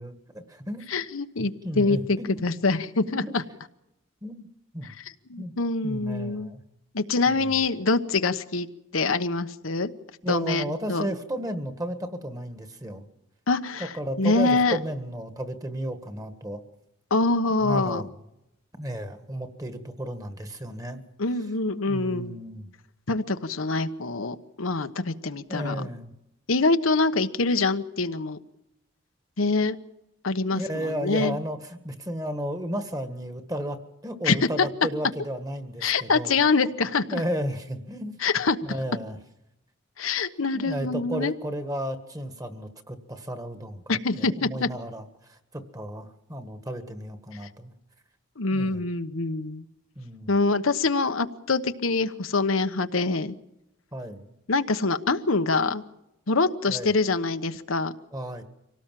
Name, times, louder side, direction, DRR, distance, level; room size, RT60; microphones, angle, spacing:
voice 1, 0.0-0.9 1.6-2.5 3.1-3.4 4.2-4.5 4.7-4.9 5.4-5.5 5.8-6.6 7.3-7.6 10.2-13.0 13.8-16.6 17.6-18.1 18.8-21.0 21.9-22.7 25.5-26.1 30.5-36.4 37.1-38.2 38.6-39.2 40.5-45.0 45.3-47.7 48.5-48.9 50.0-50.3 53.9-54.3 56.7-56.9 58.1-58.4, equal, 15° right, 9 dB, 1.7 m, -33 dB
voice 2, 0.9-3.4 5.3-6.5 6.9-8.7 8.9-9.9 10.3-11.1 13.5-13.9 14.2-14.8 17.1-18.0 21.2-22.4 23.1-25.9 26.5-28.4 29.4-29.8 30.2-31.4 34.2-34.7 35.8-37.2 38.2-38.6 40.0-41.3 43.9-44.7 48.4-49.6 50.3-53.4 54.5-55.8 56.3-57.9, left 3 dB, 85° left, 9 dB, 1.1 m, -25 dB
25.0 x 18.0 x 7.6 m, 0.89 s
head